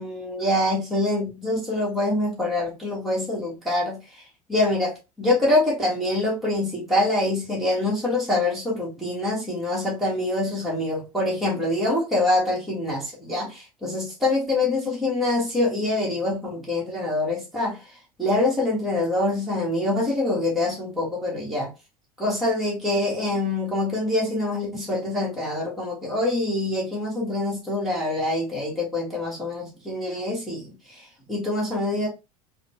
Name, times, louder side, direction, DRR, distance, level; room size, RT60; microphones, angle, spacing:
voice 1, 0.0-4.2 4.5-17.8 18.2-21.7 22.2-32.1, left 2 dB, ahead, 1.5 m, -25 dB
3.6 x 2.3 x 2.9 m
hypercardioid pair, 80°, 19 cm